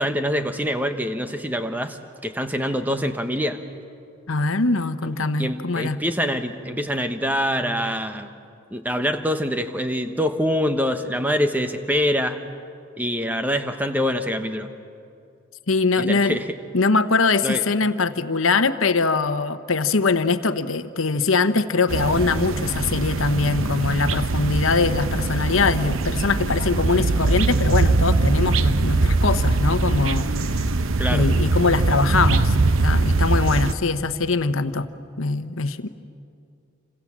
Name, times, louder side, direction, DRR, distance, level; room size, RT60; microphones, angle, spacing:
voice 1, 0.0-3.6 5.0-5.1 5.4-8.3 8.7-12.4 13.0-14.7 16.0-16.5 17.4-17.6 31.0-31.3, equal, 10° right, 7 dB, 1.1 m, -25 dB
voice 2, 4.3-6.0 15.7-16.4 16.7-30.7 31.1-34.9 35.2-35.9, left 4 dB, 90° left, 11 dB, 1.0 m, -22 dB
sound 1, 21.9-33.7, right 3 dB, 85° right, 0.8 m, -22 dB
27.5 x 26.5 x 7.4 m, 2.5 s
head